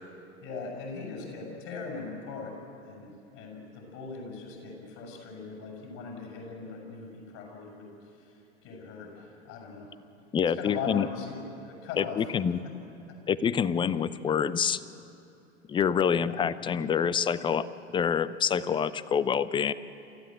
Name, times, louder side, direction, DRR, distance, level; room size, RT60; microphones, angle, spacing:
voice 1, 0.4-2.5 2.8-9.9 10.5-12.3 12.6-12.7 13.1-13.2 16.1-16.4, left 4 dB, 50° left, 0 dB, 7.5 m, -40 dB
voice 2, 10.3-11.1 12.0-12.6 13.3-14.8 15.7-17.7 17.9-19.7, left 7 dB, 15° left, 16 dB, 0.5 m, -26 dB
27.5 x 15.0 x 7.8 m, 2.8 s
figure-of-eight pair, 95°, 35 cm